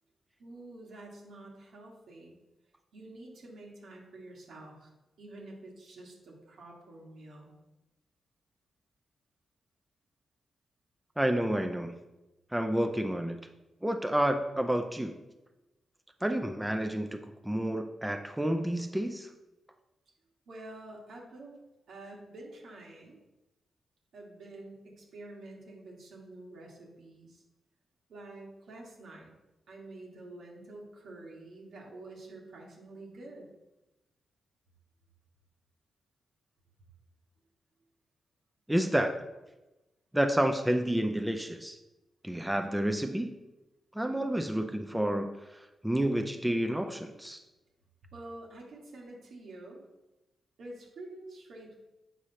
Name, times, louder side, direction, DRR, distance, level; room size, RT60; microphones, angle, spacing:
voice 1, 0.4-2.4 2.9-4.9 5.2-7.5 20.5-21.5 21.9-23.2 24.1-27.4 28.1-29.3 29.7-33.5 48.1-49.8 50.6-51.8, right 2 dB, 80° right, -2 dB, 1.6 m, -48 dB
voice 2, 11.2-11.9 12.5-13.4 13.8-15.1 16.2-19.3 38.7-39.1 40.1-41.8 42.2-43.3 43.9-45.3 45.8-47.4, right 1 dB, 10° right, 5 dB, 0.5 m, -29 dB
7.4 x 4.9 x 2.8 m, 1.0 s
cardioid pair, 70°, 0 cm